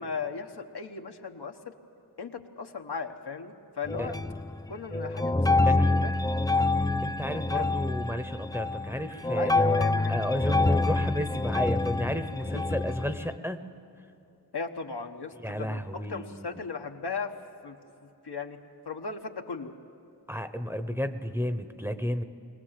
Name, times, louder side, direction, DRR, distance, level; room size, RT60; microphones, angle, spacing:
voice 1, 0.0-1.7 2.2-4.2 4.7-6.1 7.5-7.7 9.3-10.1 12.5-12.6 14.5-17.4 17.6-19.7, left 5 dB, 75° left, 4 dB, 1.2 m, -37 dB
sound 1, 3.9-4.7 4.9-13.4, left 2 dB, 10° left, 0.4 m, -26 dB
voice 2, 5.6-5.9 7.0-9.5 10.1-13.7 15.4-16.6 20.3-22.2, equal, 5° right, 9 dB, 0.9 m, -32 dB
22.5 x 18.5 x 7.5 m, 2.9 s
wide cardioid pair, 65°, 40 cm